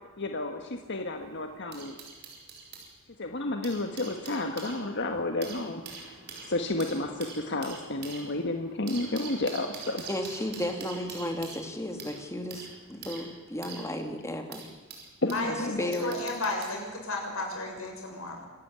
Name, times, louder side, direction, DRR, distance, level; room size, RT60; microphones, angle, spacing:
voice 1, 0.2-2.0 3.2-5.8 6.5-10.0 15.2-15.8, left 2 dB, 55° left, 4 dB, 1.6 m, -31 dB
sound 1, 0.8-2.9 3.4-15.5 15.9-16.8 17.7-17.9, right 4 dB, 50° right, 5.5 m, -45 dB
voice 2, 10.1-14.7 15.5-16.1, left 1 dB, 15° left, 4 dB, 2.7 m, -34 dB
voice 3, 15.3-18.5, left 2 dB, 75° left, 1 dB, 6.6 m, -33 dB
26.5 x 13.5 x 9.6 m, 1.4 s
head